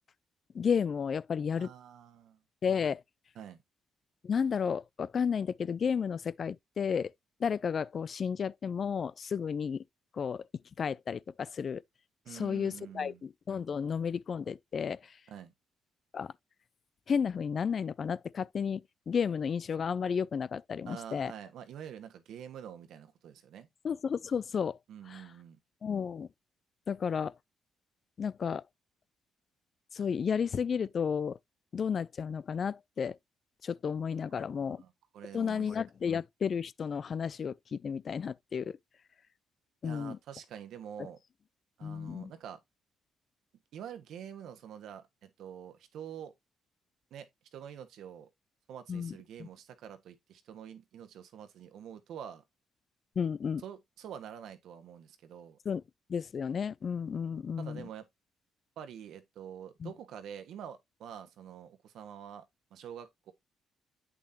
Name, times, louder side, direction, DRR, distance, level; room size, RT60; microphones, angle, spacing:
voice 1, 0.5-1.7 2.6-3.0 4.2-7.1 7.4-9.8 10.1-10.4 10.8-11.8 12.3-15.2 16.1-16.3 17.1-21.3 23.8-24.8 25.1-25.2 25.8-26.3 26.9-27.3 28.2-28.6 29.9-31.4 31.7-33.2 33.6-34.8 35.3-38.8 39.8-40.2 41.8-42.3 48.9-49.1 49.4-49.5 53.2-53.6 55.7-55.8 56.1-57.8 59.8-59.9, left 6 dB, 45° left, 0.4 m, -32 dB
voice 2, 1.5-2.4 3.3-3.6 12.2-13.2 15.3-15.5 20.8-23.7 24.9-25.6 34.3-35.8 39.8-41.2 41.8-42.6 43.7-46.3 47.1-48.3 48.7-52.4 53.6-55.6 57.6-58.0 58.8-62.4 62.7-63.3, right 9 dB, 80° right, 1.4 m, -46 dB
8.5 x 6.2 x 2.7 m
cardioid pair, 110°, 0 cm